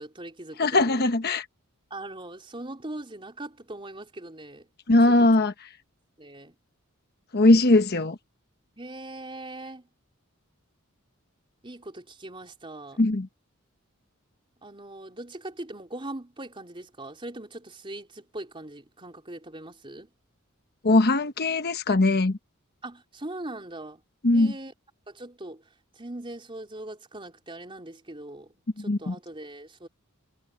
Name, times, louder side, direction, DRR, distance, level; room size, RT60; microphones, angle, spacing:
voice 1, 0.0-1.0 1.9-4.7 5.1-5.2 6.2-6.5 8.8-9.9 11.6-13.0 14.6-20.1 22.8-24.0 24.3-24.7 25.1-25.6 25.9-28.5 28.8-29.9, right 1 dB, 25° right, 3.6 m, -40 dB
voice 2, 0.6-1.5 4.9-5.5 7.3-8.2 13.0-13.3 20.8-22.4 24.2-24.5 28.8-29.1, left 2 dB, 50° left, 1.1 m, -20 dB
head